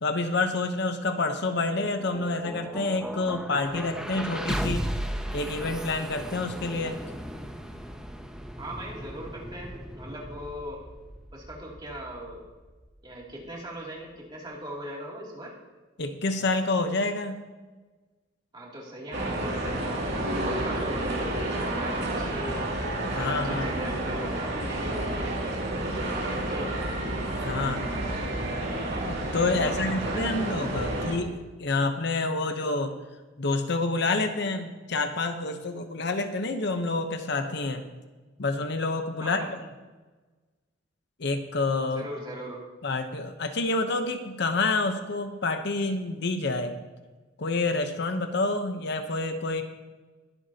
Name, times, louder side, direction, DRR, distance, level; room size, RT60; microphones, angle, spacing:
voice 1, 0.0-4.9 5.3-7.0 16.0-17.4 23.1-23.7 27.4-27.8 29.1-31.3 31.6-33.0 33.4-37.8 38.4-39.5 41.2-42.0 42.8-46.7 47.4-49.6, left 3 dB, 60° left, 7 dB, 0.9 m, -28 dB
sound 1, 1.6-13.6, equal, 5° right, 0.7 m, -36 dB
voice 2, 8.6-10.8 11.3-12.4 13.0-15.5 18.5-22.7 22.9-25.8 26.1-26.8 29.5-30.3 30.9-31.1 39.2-39.6 41.8-42.6, equal, 25° right, -3 dB, 2.7 m, -40 dB
sound 2, 19.1-31.2, right 1 dB, 60° right, 2.6 m, -30 dB
21.0 x 8.2 x 2.8 m, 1.3 s
head